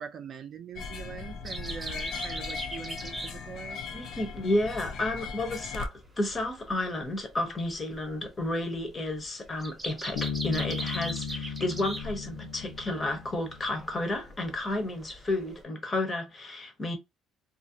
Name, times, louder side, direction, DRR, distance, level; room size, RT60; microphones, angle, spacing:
voice 1, 0.0-3.8, right 7 dB, 45° right, 0.4 m, -42 dB
sound 1, 0.8-5.9, left 5 dB, 60° left, 0.4 m, -38 dB
sound 2, 1.5-15.6, right 1 dB, 10° right, 0.7 m, -42 dB
voice 2, 3.9-17.0, left 1 dB, 25° left, 0.7 m, -31 dB
Bass guitar, 10.1-13.8, left 7 dB, 85° left, 0.8 m, -36 dB
2.4 x 2.0 x 2.6 m
cardioid pair, 130°, 0 cm